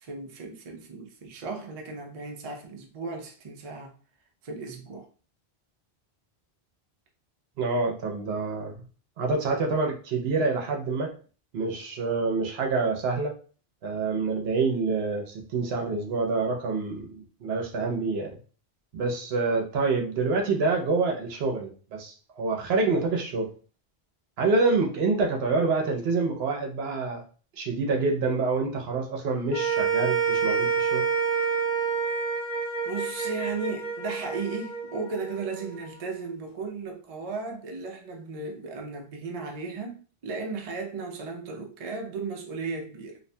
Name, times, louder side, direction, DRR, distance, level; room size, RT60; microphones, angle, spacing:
voice 1, 0.0-3.9 4.4-5.1 32.9-43.2, right 4 dB, 50° right, 0.4 m, -35 dB
voice 2, 7.6-8.8 9.2-11.1 11.5-13.3 13.8-18.3 18.9-23.5 24.4-27.2 27.6-31.0, right 3 dB, 75° right, 0.8 m, -27 dB
sound 1, 29.5-35.9, right 6 dB, 55° left, 0.8 m, -28 dB
2.5 x 2.2 x 2.6 m
omnidirectional pair, 1.1 m